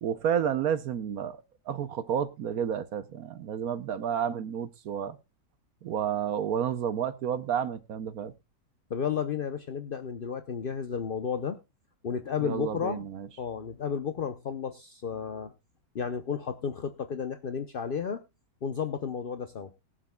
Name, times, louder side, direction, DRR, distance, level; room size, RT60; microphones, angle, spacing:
voice 1, 0.0-5.2 5.8-8.3 12.4-13.3, right 8 dB, 65° right, 1.0 m, -31 dB
voice 2, 8.9-11.6 12.0-13.1 13.4-15.5 15.9-18.2 18.6-19.7, left 7 dB, 65° left, 0.5 m, -32 dB
21.0 x 7.5 x 2.2 m
omnidirectional pair, 1.9 m